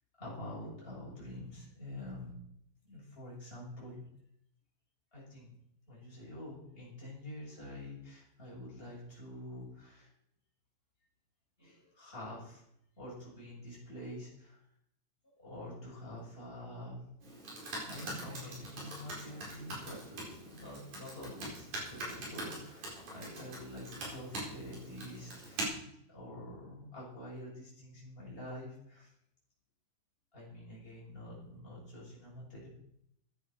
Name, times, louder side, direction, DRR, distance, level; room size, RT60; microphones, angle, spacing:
voice 1, 0.2-2.3 2.8-4.1 5.1-5.5 5.9-10.1 11.6-12.6 13.0-14.6 15.4-17.0 17.8-25.7 26.1-29.1 30.3-32.7, left 1 dB, 15° left, -5 dB, 6.9 m, -47 dB
Computer keyboard, 17.2-25.7, right 1 dB, 55° right, 5.8 m, -43 dB
15.0 x 11.0 x 5.7 m, 0.75 s
omnidirectional pair, 4.2 m